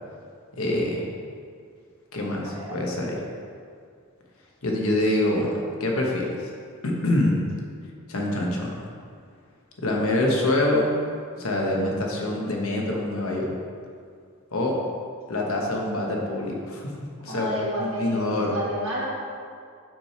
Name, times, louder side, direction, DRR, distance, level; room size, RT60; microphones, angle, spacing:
voice 1, 0.5-1.1 2.1-3.2 4.6-5.5 5.8-6.5 6.8-7.4 8.1-8.8 9.8-11.0 11.4-13.5 14.5-14.8 15.3-16.9 17.2-18.6, left 1 dB, 85° left, -1 dB, 1.1 m, -25 dB
voice 2, 2.4-3.2 17.2-19.1, equal, 70° right, -5 dB, 1.6 m, -31 dB
6.0 x 4.9 x 4.3 m, 2.2 s
head